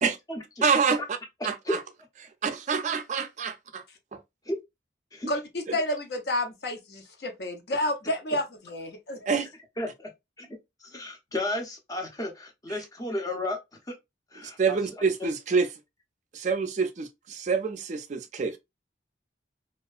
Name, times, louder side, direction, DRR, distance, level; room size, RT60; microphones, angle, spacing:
voice 1, 0.6-1.0 1.4-1.8 2.4-3.8 9.3-9.5 14.4-15.7 16.3-18.6, right 5 dB, 40° right, 0.3 m, -26 dB
voice 2, 5.3-9.3, left 1 dB, 60° left, 0.6 m, -30 dB
voice 3, 10.8-13.6 13.9-14.0 14.3-14.8 15.2-15.3, left 1 dB, 20° left, 0.6 m, -32 dB
2.7 x 2.3 x 2.3 m
head